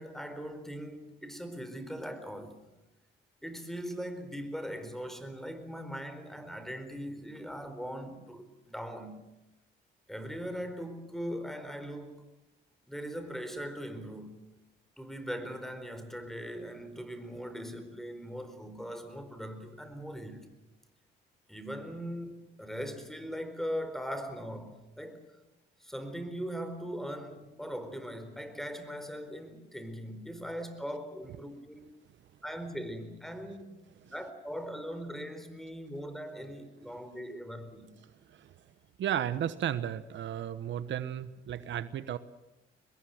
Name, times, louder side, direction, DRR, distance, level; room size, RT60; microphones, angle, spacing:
voice 1, 0.0-2.5 3.4-9.2 10.1-12.2 12.9-14.4 15.0-20.4 21.5-25.2 25.8-31.9 32.4-33.7 34.0-38.0, equal, ahead, 4.5 m, -40 dB
voice 2, 39.0-42.2, right 10 dB, 70° right, 1.1 m, -33 dB
24.0 x 21.0 x 7.8 m
cardioid pair, 90°, 20 cm